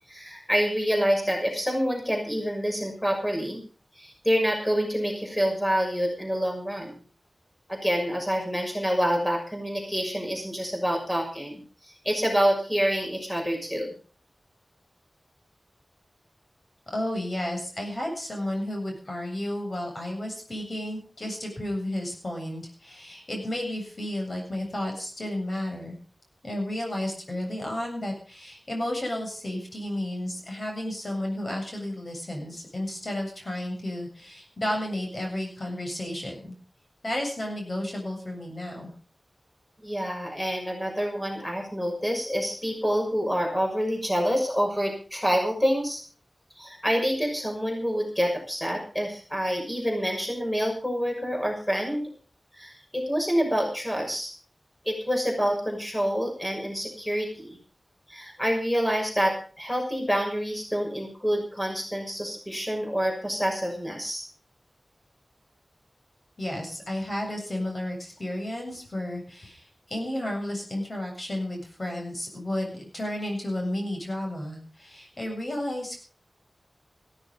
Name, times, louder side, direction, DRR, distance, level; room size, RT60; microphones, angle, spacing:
voice 1, 0.1-3.6 4.0-6.9 7.7-13.9 39.8-46.0 46.6-52.1 52.5-54.3 54.8-57.6 58.1-64.2, equal, 10° left, 2 dB, 6.3 m, -27 dB
voice 2, 16.9-26.0 26.4-36.5 37.0-38.9 66.4-76.0, left 1 dB, 45° left, 1 dB, 7.5 m, -32 dB
16.0 x 14.5 x 5.4 m, 0.39 s
wide cardioid pair, 80°, 0 cm